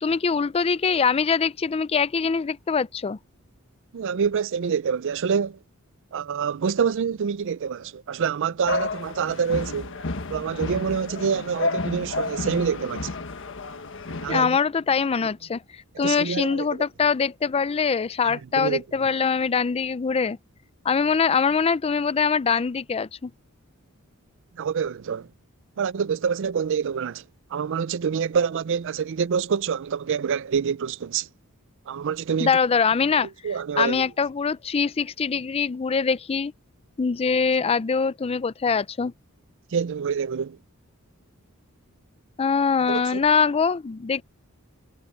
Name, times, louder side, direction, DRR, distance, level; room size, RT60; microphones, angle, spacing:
voice 1, 0.0-3.2 14.3-20.4 20.8-23.3 32.4-33.3 33.8-36.5 37.0-39.1 42.4-44.2, left 5 dB, 25° left, 0.4 m, -23 dB
voice 2, 3.9-5.6 6.1-9.9 10.3-13.1 14.2-14.6 16.0-16.7 18.3-18.8 24.6-25.3 25.8-27.2 27.5-31.3 31.9-32.5 33.4-34.0 39.7-40.6 42.9-43.2, right 6 dB, 60° right, 0.4 m, -26 dB
sound 1, 8.7-14.4, left 3 dB, 60° left, 1.5 m, -31 dB
head